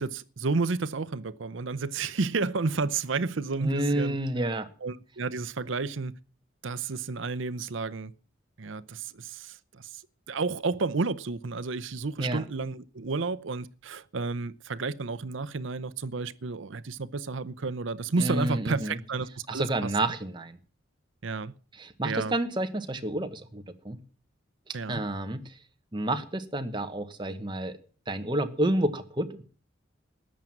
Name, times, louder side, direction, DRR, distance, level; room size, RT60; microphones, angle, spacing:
voice 1, 0.0-4.2 4.8-6.1 6.6-8.1 8.6-10.0 10.3-19.9 21.2-21.5 22.0-22.3 24.7-25.0, right 4 dB, 65° right, 0.7 m, -31 dB
voice 2, 3.6-4.7 12.2-12.4 18.2-19.0 19.5-20.6 21.8-24.0 24.9-25.5 25.9-27.8 28.1-29.4, right 1 dB, 20° right, 1.1 m, -29 dB
14.0 x 9.2 x 7.3 m
head